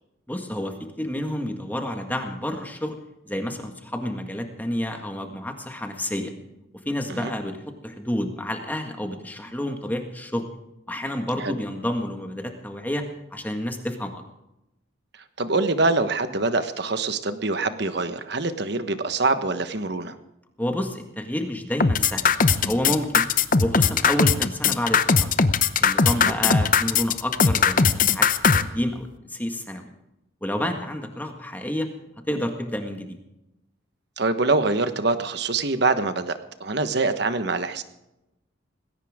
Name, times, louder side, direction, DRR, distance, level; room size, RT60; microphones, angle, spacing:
voice 1, 0.3-3.0 3.3-6.3 6.9-7.6 7.8-10.5 10.9-13.0 13.3-14.2 20.6-23.2 23.6-25.3 25.8-28.3 28.5-29.8 30.4-31.9 32.3-33.2, left 1 dB, 10° left, 4 dB, 1.7 m, -29 dB
voice 2, 15.4-20.2 26.1-26.3 34.2-37.8, right 3 dB, 55° right, 9 dB, 1.3 m, -24 dB
sound 1, 21.8-28.6, left 5 dB, 40° left, 0.7 m, -19 dB
19.5 x 17.0 x 3.7 m, 0.91 s
head